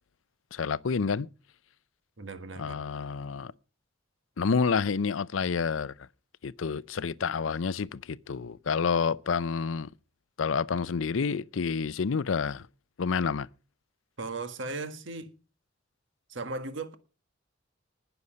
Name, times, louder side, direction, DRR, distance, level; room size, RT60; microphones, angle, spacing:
voice 1, 0.5-1.3 2.6-3.5 4.4-5.9 6.4-9.9 10.4-12.7 13.0-13.5, left 5 dB, 80° left, 0.5 m, -29 dB
voice 2, 2.2-2.8 14.2-15.3 16.3-16.9, right 3 dB, 65° right, 1.6 m, -37 dB
19.5 x 7.0 x 5.2 m
head